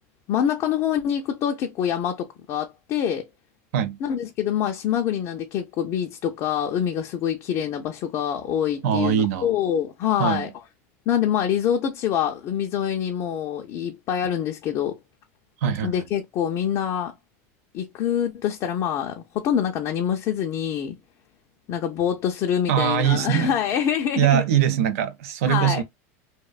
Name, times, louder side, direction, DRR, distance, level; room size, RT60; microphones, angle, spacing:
voice 1, 0.3-3.3 4.0-10.5 11.1-15.0 15.8-17.1 17.7-21.0 21.7-24.4 25.4-25.8, left 9 dB, 40° left, 0.4 m, -25 dB
voice 2, 8.8-9.5 10.2-10.5 15.6-15.9 22.7-23.5 24.2-25.8, right 10 dB, 75° right, 0.4 m, -22 dB
2.5 x 2.1 x 2.3 m
supercardioid pair, 145°, 8 cm